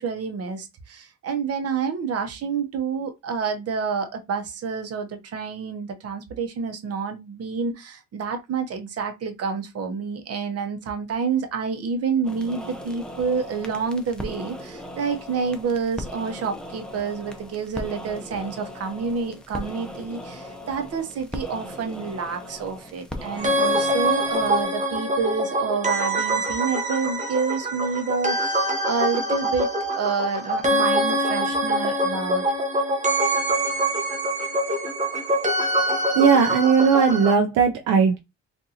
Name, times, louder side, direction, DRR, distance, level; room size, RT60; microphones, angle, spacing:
voice 1, 0.0-29.7 29.9-32.4, right 5 dB, 55° right, 0.9 m, -28 dB
sound 1, 12.2-24.6, left 1 dB, 5° left, 0.7 m, -38 dB
sound 2, 23.4-37.3, right 1 dB, 25° right, 0.9 m, -24 dB
voice 2, 36.1-38.2, right 6 dB, 80° right, 0.6 m, -18 dB
3.7 x 2.6 x 2.8 m
cardioid pair, 90°, 30 cm